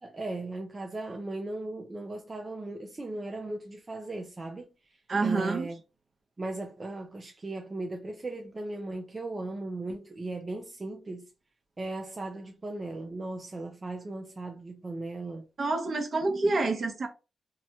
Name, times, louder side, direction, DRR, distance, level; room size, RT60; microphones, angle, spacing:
voice 1, 0.0-5.8 6.4-11.3 11.8-15.5, right 2 dB, 35° right, 0.5 m, -37 dB
voice 2, 5.1-5.7 15.6-17.1, right 3 dB, 55° right, 0.8 m, -27 dB
2.7 x 2.1 x 2.8 m
cardioid pair, 60°, 0 cm